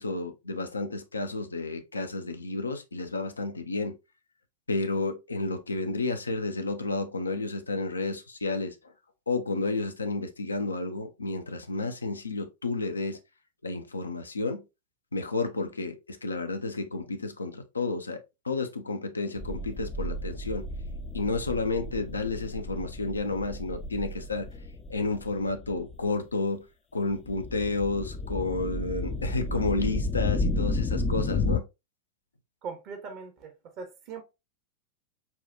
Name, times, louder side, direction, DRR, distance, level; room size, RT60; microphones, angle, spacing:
voice 1, 0.0-4.0 4.7-8.8 9.3-13.2 13.6-14.6 15.1-20.7 21.1-24.5 24.9-26.6 26.9-31.7, left 3 dB, 80° left, 0.6 m, -31 dB
sound 1, 19.4-26.1 27.1-31.6, left 2 dB, 25° left, 0.4 m, -32 dB
voice 2, 32.6-34.2, right 5 dB, 40° right, 1.0 m, -40 dB
5.6 x 2.3 x 2.6 m
figure-of-eight pair, 90°, 0 cm